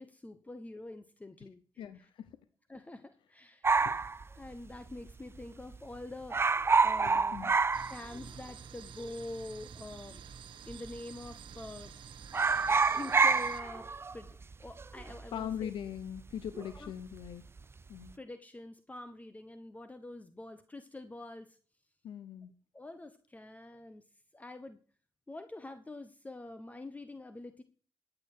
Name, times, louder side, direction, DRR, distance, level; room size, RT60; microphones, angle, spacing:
voice 1, 0.0-1.6 1.9-2.1 2.7-3.7 4.3-6.4 6.8-7.5 7.9-12.0 12.9-15.7 16.7-16.9 18.1-21.6 22.7-24.0 24.3-24.8 25.3-27.6, left 2 dB, 20° left, 10 dB, 1.0 m, -46 dB
voice 2, 1.8-2.3 3.8-3.9 7.0-7.5 15.3-17.4 17.9-18.1 22.0-22.5, left 9 dB, 85° left, 13 dB, 0.7 m, -40 dB
sound 1, 3.6-5.1 5.4-5.5 5.7-6.0 6.3-8.6 8.8-8.9 9.7-10.4 10.7-11.0 11.3-11.9 12.2-16.9 17.2-17.6, right 4 dB, 30° right, 0.5 m, -28 dB
sound 2, 7.7-13.6, right 8 dB, 80° right, 1.1 m, -51 dB
13.5 x 8.7 x 4.7 m, 0.42 s
cardioid pair, 75°, 8 cm